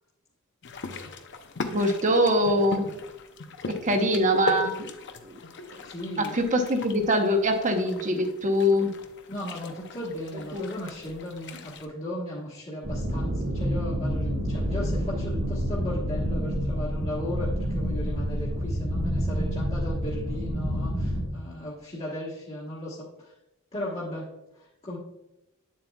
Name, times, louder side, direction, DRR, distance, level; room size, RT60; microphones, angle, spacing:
sound 1, 0.6-11.9, left 3 dB, 55° left, 0.7 m, -39 dB
voice 1, 1.7-2.9 3.8-4.9 5.2-5.4 6.2-8.9 10.5-10.6, equal, 35° right, 5 dB, 1.0 m, -23 dB
voice 2, 5.8-6.4 9.3-23.3 23.7-25.0, left 1 dB, 30° left, -6 dB, 1.4 m, -36 dB
sound 2, 12.8-21.2, equal, 70° right, 1.9 m, -28 dB
8.6 x 7.5 x 2.3 m, 0.91 s
head